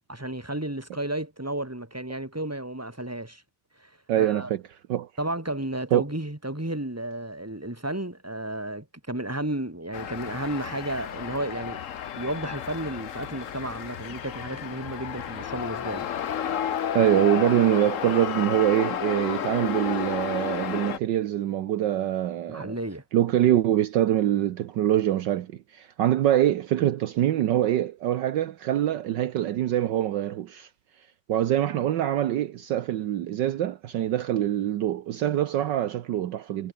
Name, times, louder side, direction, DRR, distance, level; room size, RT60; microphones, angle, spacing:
voice 1, 0.1-3.4 3.8-4.5 5.2-11.8 12.1-16.1 22.5-23.0, right 1 dB, 5° right, 3.2 m, -32 dB
voice 2, 4.1-4.6 4.9-5.1 5.9-6.0 16.9-22.8 23.1-30.7 31.3-36.7, right 12 dB, 70° right, 1.4 m, -24 dB
sound 1, 9.9-21.0, left 9 dB, 50° left, 1.1 m, -32 dB
omnidirectional pair, 2.2 m